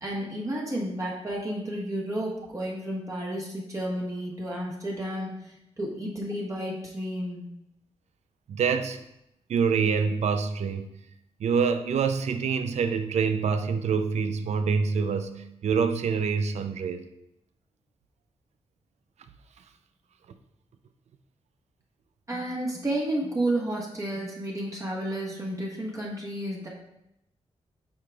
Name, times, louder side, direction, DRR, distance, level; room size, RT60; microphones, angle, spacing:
voice 1, 0.0-7.4 22.3-26.7, right 1 dB, 30° right, -4 dB, 1.3 m, -31 dB
voice 2, 8.5-9.0 9.5-11.0 11.4-17.0, right 5 dB, 80° right, 9 dB, 0.5 m, -26 dB
8.7 x 4.8 x 2.3 m, 0.83 s
cardioid pair, 90°, 11 cm